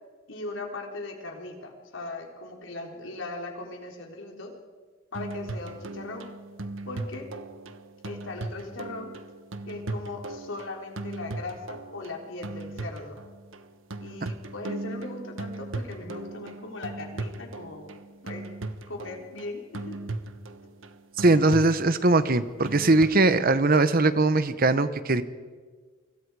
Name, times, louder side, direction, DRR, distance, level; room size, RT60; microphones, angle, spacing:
voice 1, 0.3-4.5 5.1-6.3 6.9-7.3 8.0-9.1 9.7-13.2 14.0-17.9 18.2-18.5 18.9-20.0, left 2 dB, 75° left, 1 dB, 3.8 m, -39 dB
sound 1, 5.1-23.3, right 2 dB, 80° right, 1.3 m, -38 dB
voice 2, 21.2-25.2, right 2 dB, 45° right, 12 dB, 1.0 m, -21 dB
29.5 x 25.0 x 4.9 m, 1.5 s
head